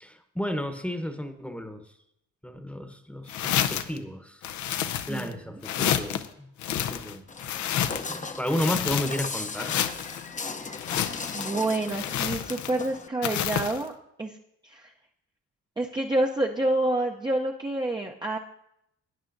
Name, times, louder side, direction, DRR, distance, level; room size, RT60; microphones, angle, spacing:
voice 1, 0.0-1.8 2.4-4.4 5.1-7.2 8.1-9.7, equal, 5° left, 7 dB, 1.0 m, -32 dB
sound 1, 3.3-4.0 4.4-5.3 5.6-6.3 6.6-8.2 8.5-9.3 9.6-10.2 10.7-11.5 11.9-12.9 13.2-13.8, left 10 dB, 70° left, 0.6 m, -29 dB
voice 2, 5.1-5.4 11.3-13.9 14.2-14.4 14.6-14.9 15.8-18.4, right 2 dB, 15° right, 0 dB, 0.6 m, -28 dB
Walk footsteps, 7.3-13.1, left 4 dB, 25° left, 0.7 m, -37 dB
17.5 x 9.3 x 2.6 m, 0.78 s
cardioid pair, 90°, 30 cm